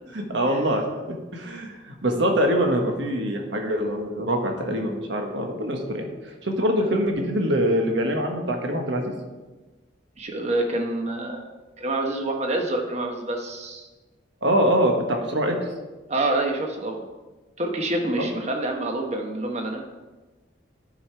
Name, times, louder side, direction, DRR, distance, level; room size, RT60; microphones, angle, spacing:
voice 1, 0.1-0.8 1.3-6.1 6.4-9.1 14.4-15.5 18.2-18.3, equal, 65° right, 2 dB, 1.3 m, -24 dB
voice 2, 10.2-11.4 11.8-13.9 16.1-17.1 17.6-19.9, right 2 dB, 35° right, 2 dB, 1.0 m, -27 dB
11.0 x 5.1 x 4.6 m, 1.2 s
head